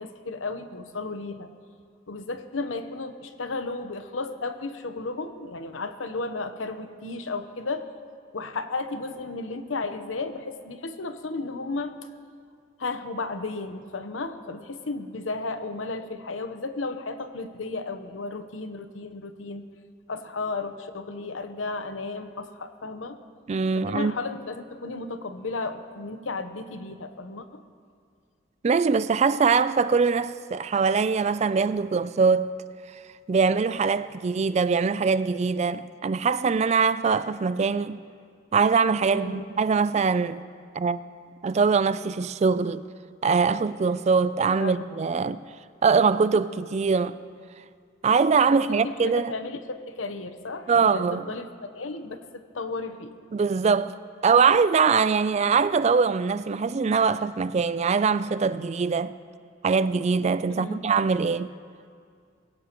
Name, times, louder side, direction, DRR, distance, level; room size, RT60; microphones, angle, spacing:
voice 1, 0.0-1.5 2.1-7.9 8.3-11.9 12.8-19.7 20.1-23.2 23.7-27.6 39.1-39.4 44.6-44.9 48.5-53.1 60.5-60.8, left 3 dB, 90° left, 0.9 m, -34 dB
voice 2, 23.5-24.1 28.6-32.5 33.3-38.0 38.5-40.4 40.7-41.0 41.4-42.8 43.2-45.4 45.8-47.2 48.0-49.3 50.7-51.3 53.3-54.0 54.2-59.2 59.6-61.5, right 5 dB, 35° right, 0.3 m, -22 dB
22.0 x 17.0 x 3.0 m
head